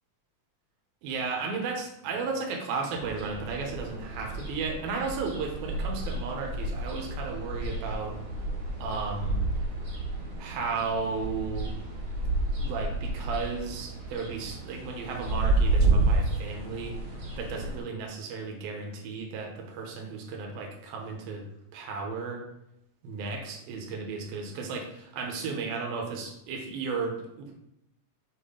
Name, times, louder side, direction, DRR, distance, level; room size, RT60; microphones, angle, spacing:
voice 1, 1.0-8.2 8.8-9.5 10.4-11.7 12.6-16.9 17.4-21.5 21.7-22.4 23.0-27.5, right 4 dB, 85° right, 1 dB, 2.9 m, -34 dB
sound 1, 2.9-17.8, right 2 dB, 40° right, 2.4 m, -30 dB
6.6 x 6.1 x 3.8 m, 0.81 s
omnidirectional pair, 4.1 m